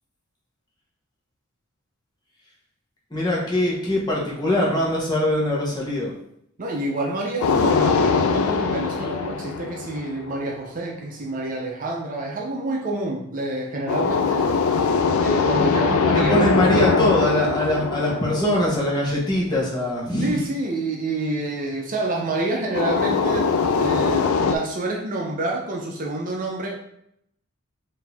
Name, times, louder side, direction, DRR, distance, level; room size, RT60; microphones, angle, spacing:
voice 1, 3.1-6.1 16.1-20.4, left 1 dB, 20° left, -4 dB, 1.1 m, -22 dB
voice 2, 6.6-14.8 15.2-17.1 20.2-26.8, right 2 dB, 40° right, -1 dB, 0.6 m, -28 dB
sound 1, 7.4-10.5 13.9-19.3 22.7-24.6, left 5 dB, 80° left, 0.4 m, -22 dB
4.4 x 2.7 x 3.5 m, 0.73 s
head